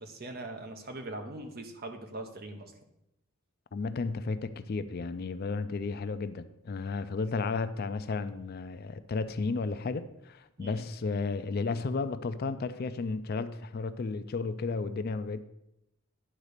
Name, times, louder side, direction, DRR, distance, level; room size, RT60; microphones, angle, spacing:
voice 1, 0.0-2.7 10.6-10.9, right 2 dB, 45° right, 5 dB, 1.0 m, -41 dB
voice 2, 3.7-15.4, left 4 dB, 45° left, 12 dB, 0.4 m, -33 dB
10.0 x 4.0 x 6.5 m, 0.85 s
head